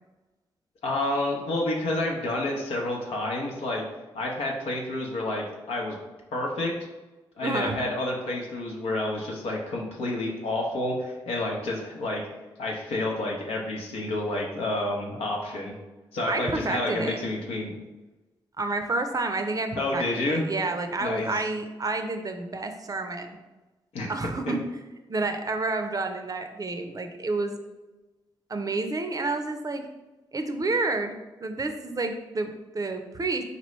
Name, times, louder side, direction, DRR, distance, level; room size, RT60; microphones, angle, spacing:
voice 1, 0.8-3.8 4.1-6.0 6.3-6.7 7.4-12.2 12.6-15.7 16.1-17.7 19.8-20.4 21.0-21.4 23.9-24.1 24.5-24.6, left 2 dB, 85° left, -1 dB, 0.7 m, -29 dB
voice 2, 7.4-7.8 16.3-17.2 18.6-23.4 24.1-24.6 25.1-27.6 28.5-29.9 30.3-31.1 31.4-33.4, right 3 dB, 35° right, 7 dB, 0.5 m, -29 dB
4.0 x 3.0 x 3.1 m, 1.1 s
supercardioid pair, 40°, 10 cm